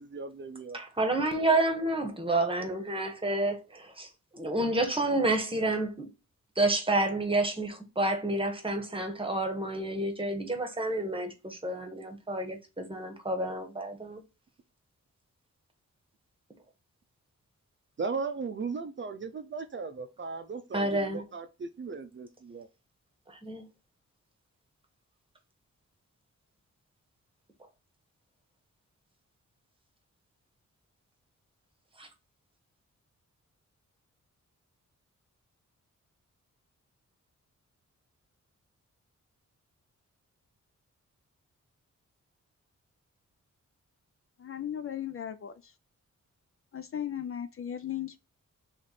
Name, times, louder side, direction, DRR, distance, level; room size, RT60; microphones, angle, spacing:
voice 1, 0.0-0.8 18.0-22.7, right 4 dB, 40° right, 0.5 m, -37 dB
voice 2, 0.7-6.1 6.6-14.2 20.7-21.2 23.3-23.7 32.0-32.1, right 2 dB, 20° right, 1.1 m, -29 dB
voice 3, 44.4-45.7 46.7-48.2, left 10 dB, 50° left, 0.4 m, -36 dB
3.2 x 3.2 x 4.0 m
wide cardioid pair, 120°, 30 cm